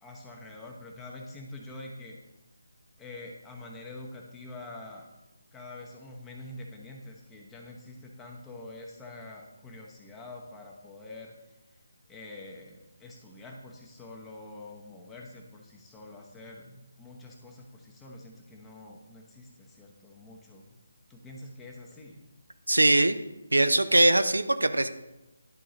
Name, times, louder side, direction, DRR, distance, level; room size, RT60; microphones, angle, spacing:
voice 1, 0.0-2.2 3.0-5.1 5.5-11.3 12.1-20.7 21.1-22.2, left 2 dB, 10° left, 0 dB, 0.9 m, -46 dB
voice 2, 22.7-23.2 23.5-24.9, right 1 dB, 90° right, 10 dB, 0.5 m, -21 dB
10.5 x 3.7 x 4.0 m, 0.97 s
figure-of-eight pair, 155°, 0 cm